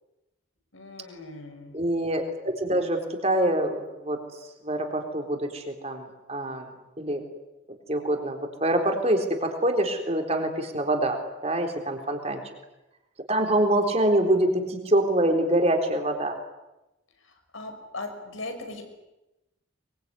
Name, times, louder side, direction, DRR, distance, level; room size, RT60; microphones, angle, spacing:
voice 1, 0.7-1.7 17.5-18.8, left 2 dB, 85° left, 5 dB, 6.0 m, -38 dB
voice 2, 1.7-4.2 4.6-6.7 7.0-7.2 7.9-12.4 13.3-16.3, right 1 dB, 30° right, 3 dB, 3.8 m, -25 dB
23.5 x 23.0 x 9.6 m, 0.97 s
head